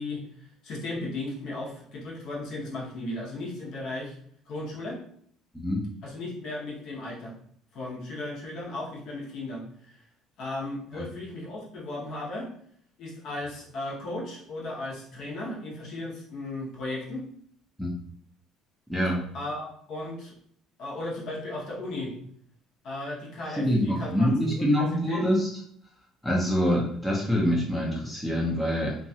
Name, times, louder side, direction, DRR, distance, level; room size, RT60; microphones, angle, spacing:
voice 1, 0.0-4.2 4.5-5.0 6.0-7.3 7.7-10.0 10.4-12.5 13.0-17.2 19.3-20.3 20.8-22.1 22.8-25.3, left 2 dB, 50° left, -3 dB, 0.9 m, -36 dB
voice 2, 18.9-19.2 23.5-25.5 26.2-29.0, equal, 5° left, -3 dB, 0.5 m, -25 dB
2.9 x 2.3 x 2.7 m, 0.63 s
cardioid pair, 155°, 0 cm